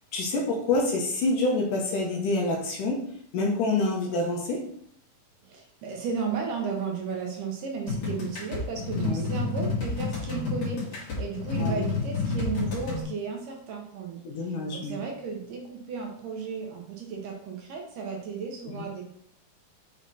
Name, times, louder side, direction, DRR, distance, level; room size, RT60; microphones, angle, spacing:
voice 1, 0.1-3.0 3.3-4.6 9.0-9.3 11.6-11.8 14.2-15.0 18.8-18.9, left 2 dB, 70° left, -1 dB, 2.3 m, -27 dB
voice 2, 5.4-19.0, right 5 dB, 70° right, 1 dB, 2.2 m, -34 dB
sound 1, 7.9-13.0, left 4 dB, 50° left, 3.6 m, -30 dB
7.2 x 4.0 x 4.1 m, 0.67 s
omnidirectional pair, 4.3 m